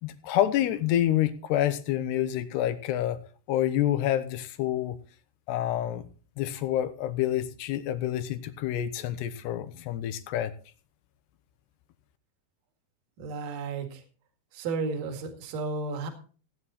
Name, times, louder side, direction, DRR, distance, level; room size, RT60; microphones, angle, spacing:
voice 1, 0.0-3.2 3.5-5.0 5.5-6.1 6.4-10.5, left 12 dB, 80° left, 12 dB, 3.0 m, -28 dB
voice 2, 13.2-14.0 14.5-16.1, right 4 dB, 55° right, 5 dB, 3.3 m, -33 dB
17.0 x 9.4 x 4.1 m, 0.38 s
omnidirectional pair, 4.9 m